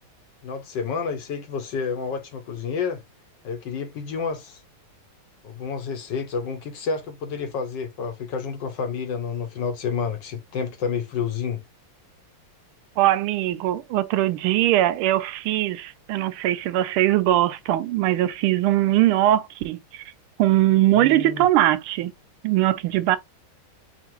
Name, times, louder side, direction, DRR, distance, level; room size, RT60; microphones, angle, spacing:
voice 1, 0.4-3.0 3.4-4.6 5.4-11.6 21.0-21.4, left 5 dB, 65° left, 1.4 m, -29 dB
voice 2, 13.0-20.0 20.4-22.1 22.4-23.2, right 14 dB, 80° right, 1.4 m, -21 dB
5.6 x 2.5 x 2.9 m
omnidirectional pair, 2.4 m